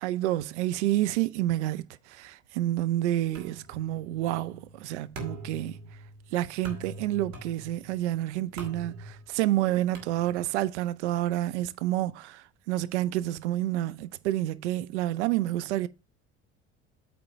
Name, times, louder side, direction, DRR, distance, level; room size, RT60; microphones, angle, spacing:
voice 1, 0.0-5.8 6.3-15.9, right 14 dB, 70° right, 0.6 m, -29 dB
sound 1, 3.3-10.7, right 1 dB, 50° right, 2.3 m, -45 dB
8.7 x 3.5 x 5.4 m
figure-of-eight pair, 55°, 36 cm